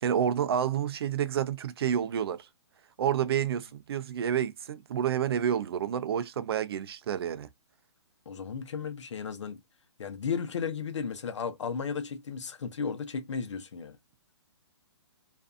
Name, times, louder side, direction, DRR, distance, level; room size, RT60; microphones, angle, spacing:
voice 1, 0.0-2.5 3.0-7.5, right 9 dB, 60° right, 0.4 m, -29 dB
voice 2, 8.3-9.6 10.0-14.0, left 6 dB, 80° left, 0.8 m, -34 dB
2.6 x 2.3 x 2.4 m
hypercardioid pair, 155°, 15 cm